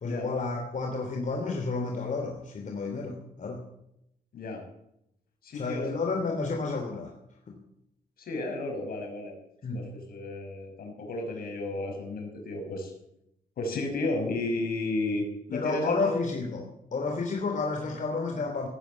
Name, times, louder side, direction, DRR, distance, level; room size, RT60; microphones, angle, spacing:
voice 1, 0.0-3.6 5.5-7.1 7.5-7.6 9.6-9.9 15.5-18.7, left 3 dB, 55° left, 2 dB, 3.1 m, -31 dB
voice 2, 4.3-4.6 5.4-5.9 8.2-9.3 9.7-12.9 13.6-16.2, left 2 dB, 75° left, 3 dB, 5.7 m, -33 dB
17.5 x 9.5 x 8.7 m, 0.80 s
cardioid pair, 80°, 15 cm